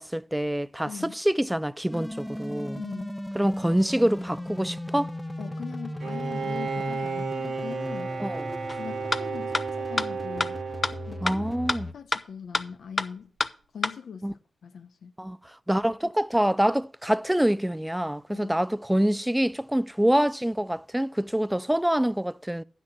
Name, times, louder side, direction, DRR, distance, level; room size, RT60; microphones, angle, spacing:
voice 1, 0.0-2.8 3.4-5.1 8.2-8.4 11.2-11.9 14.2-14.3 15.2-15.4 15.7-22.6, equal, 5° right, 0.3 m, -26 dB
voice 2, 0.9-1.2 2.8-3.2 5.4-8.2 8.8-10.6 11.1-11.5 11.9-13.3 13.7-15.1 18.3-18.5, left 7 dB, 85° left, 0.8 m, -41 dB
sound 1, 1.9-11.9, left 1 dB, 10° left, 0.9 m, -37 dB
Bowed string instrument, 6.0-11.6, right 5 dB, 85° right, 1.9 m, -33 dB
sound 2, 8.7-8.8 9.1-9.2 9.5-9.6 10.0-10.1 10.4-10.5 10.8-10.9 11.3-11.4 11.7-11.8 12.1-12.2 12.5-12.6 13.0-13.1 13.4-13.5 13.8-13.9, left 3 dB, 35° left, 0.7 m, -25 dB
9.9 x 6.2 x 5.9 m
cardioid pair, 60°, 0 cm